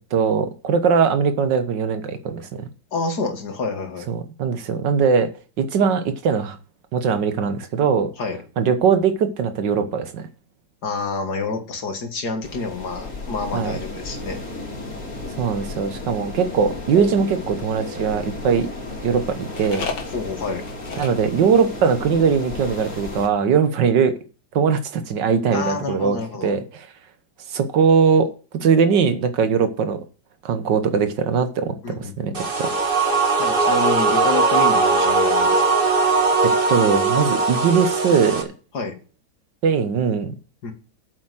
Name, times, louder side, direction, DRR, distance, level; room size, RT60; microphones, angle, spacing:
voice 1, 0.1-2.7 4.1-5.3 5.6-6.6 6.9-8.1 8.6-10.2 13.5-13.8 15.4-18.7 19.0-20.0 21.0-24.1 24.5-26.9 27.5-28.3 28.5-30.0 30.5-32.7 36.4-38.5 39.6-40.3, right 6 dB, 90° right, 1.8 m, -20 dB
voice 2, 2.9-4.1 8.2-8.4 10.8-14.4 20.1-20.6 25.5-26.5 31.8-32.4 33.4-35.6 38.7-39.0 40.6-40.7, left 3 dB, 65° left, 2.4 m, -28 dB
Jouburiki Beach Ternate Indonesia, 12.4-23.3, left 2 dB, 45° left, 3.8 m, -34 dB
sound 1, 16.9-18.3 19.5-21.2 21.5-21.7 22.0-22.1 22.3-22.7, left 5 dB, 85° left, 2.4 m, -34 dB
sound 2, 32.3-38.4, right 3 dB, 35° right, 1.5 m, -19 dB
8.6 x 7.3 x 7.8 m
omnidirectional pair, 1.9 m